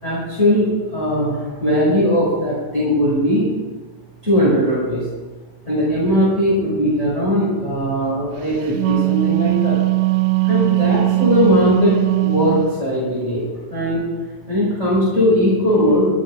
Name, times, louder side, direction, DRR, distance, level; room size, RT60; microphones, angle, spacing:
voice 1, 0.0-1.3 1.6-3.5 4.2-5.0 5.7-8.5 8.9-9.8 10.5-11.9 12.2-13.4 13.7-14.0 14.5-16.0, equal, 15° left, -8 dB, 5.3 m, -18 dB
Wind instrument woodwind instrument, 8.5-12.7, right 22 dB, 85° right, 3.1 m, -19 dB
13.5 x 12.5 x 5.6 m, 1.3 s
omnidirectional pair, 5.2 m